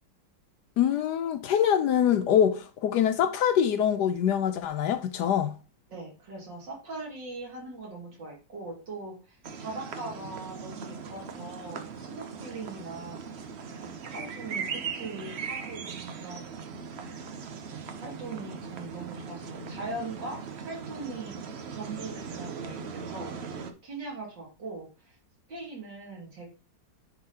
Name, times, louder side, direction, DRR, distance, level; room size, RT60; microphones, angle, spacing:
voice 1, 0.8-5.6, left 9 dB, 70° left, 1.1 m, -24 dB
voice 2, 5.9-13.5 13.8-16.5 18.0-21.4 21.7-25.2 25.5-26.5, right 2 dB, 75° right, 3.0 m, -41 dB
sound 1, 9.4-23.7, right 6 dB, 55° right, 0.7 m, -39 dB
9.7 x 3.9 x 2.8 m
omnidirectional pair, 2.0 m